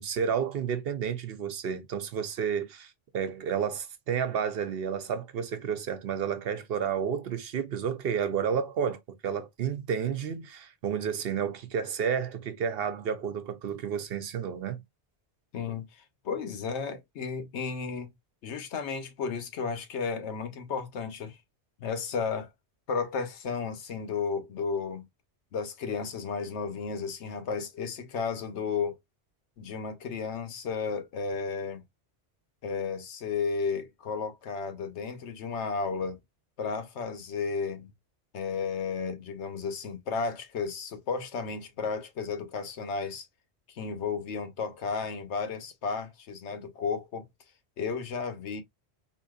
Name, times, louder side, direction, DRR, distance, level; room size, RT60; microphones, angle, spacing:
voice 1, 0.0-14.8, right 7 dB, 65° right, 0.8 m, -31 dB
voice 2, 15.5-18.1 18.4-21.4 21.8-22.5 22.9-25.1 25.5-29.0 29.6-31.8 32.6-36.2 36.6-37.9 38.3-43.3 43.7-47.3 47.8-48.6, left 5 dB, 85° left, 1.1 m, -33 dB
4.0 x 2.6 x 2.3 m
omnidirectional pair, 1.1 m